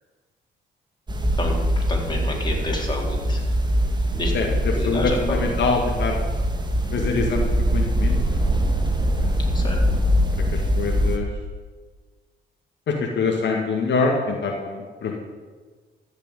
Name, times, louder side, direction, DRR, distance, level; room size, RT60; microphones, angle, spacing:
sound 1, 1.1-11.2, equal, 20° right, 2.0 m, -23 dB
voice 1, 1.9-3.4 4.1-4.3 4.7-5.5 9.5-9.8, left 2 dB, 20° left, -2 dB, 4.1 m, -29 dB
voice 2, 4.3-6.2 6.9-7.4 7.7-8.5 9.1-9.6 10.5-11.3 12.9-15.2, left 4 dB, 65° left, 0 dB, 2.2 m, -25 dB
14.5 x 6.6 x 9.3 m, 1.4 s
cardioid pair, 90°, 20 cm